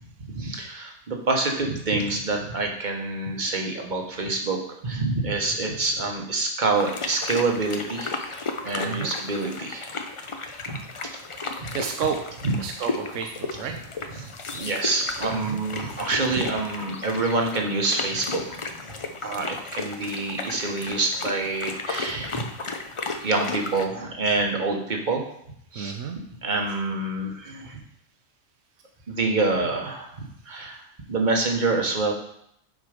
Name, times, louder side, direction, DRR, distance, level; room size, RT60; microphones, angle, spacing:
voice 1, 0.2-4.6 4.8-9.9 10.6-10.8 11.0-11.1 11.6-11.7 12.4-12.5 14.1-18.4 19.2-22.4 23.2-25.3 25.7-25.9 26.4-27.8 29.1-30.8 31.1-32.1, right 3 dB, 40° right, 2 dB, 1.2 m, -27 dB
sound 1, 6.8-23.9, left 3 dB, 40° left, 0.4 m, -34 dB
voice 2, 11.7-12.2 12.6-13.7 14.1-14.2 15.3-15.6 19.2-19.3 25.7-26.2, right 7 dB, 80° right, 3 dB, 1.0 m, -31 dB
7.6 x 4.6 x 5.0 m, 0.72 s
omnidirectional pair, 1.3 m